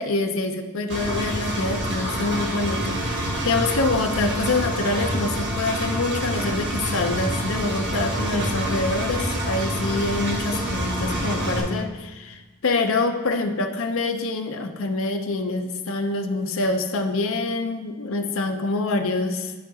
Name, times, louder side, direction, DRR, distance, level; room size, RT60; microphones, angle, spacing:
voice 1, 0.0-19.5, left 3 dB, 60° left, 6 dB, 0.6 m, -26 dB
Engine, 0.9-11.6, right 1 dB, 50° right, 1.4 m, -27 dB
11.0 x 4.8 x 2.7 m, 1.2 s
head